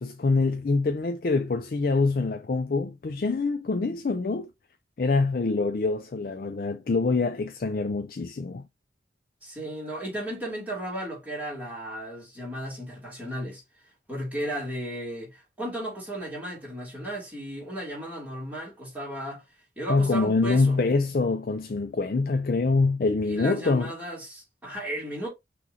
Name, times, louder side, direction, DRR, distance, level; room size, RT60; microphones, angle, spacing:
voice 1, 0.0-4.5 5.0-8.6 19.9-23.9, left 3 dB, 50° left, 0.4 m, -25 dB
voice 2, 9.4-13.6 14.1-19.4 19.8-20.8 23.3-25.3, right 1 dB, 10° right, 2.7 m, -35 dB
6.1 x 3.0 x 2.8 m
head